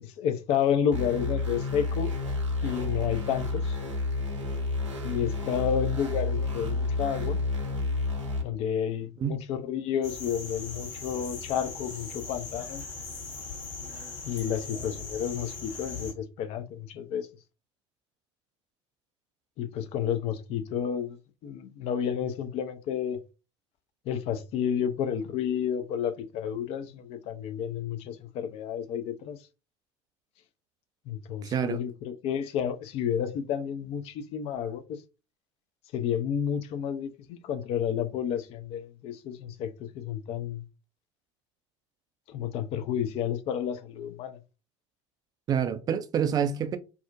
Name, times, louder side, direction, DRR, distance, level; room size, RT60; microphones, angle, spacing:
voice 1, 0.0-2.1 2.6-3.8 5.0-7.4 8.4-12.8 14.2-17.3 19.6-21.2 21.4-23.2 24.1-29.4 31.1-35.0 35.9-40.6 42.3-44.4, left 8 dB, 40° left, 0.4 m, -31 dB
sound 1, 0.9-8.4, left 3 dB, 80° right, 0.6 m, -30 dB
sound 2, 10.0-16.1, left 4 dB, 60° left, 0.9 m, -39 dB
voice 2, 31.4-31.8 45.5-46.8, right 8 dB, 25° right, 0.3 m, -27 dB
2.4 x 2.1 x 2.4 m
figure-of-eight pair, 70°, 16 cm